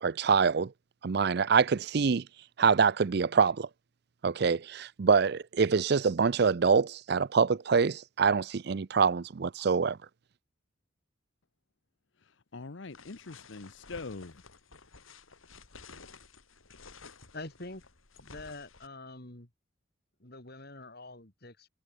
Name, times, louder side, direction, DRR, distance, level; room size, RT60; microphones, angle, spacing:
voice 1, 0.0-0.7 1.0-2.2 2.6-3.7 4.2-10.0, right 5 dB, 55° right, 0.5 m, -25 dB
voice 2, 12.2-14.4, left 3 dB, 65° left, 0.9 m, -43 dB
sound 1, 12.9-18.9, left 4 dB, 90° left, 3.9 m, -53 dB
voice 3, 17.3-17.8 18.2-19.5 20.2-21.7, left 2 dB, 50° left, 3.2 m, -45 dB
head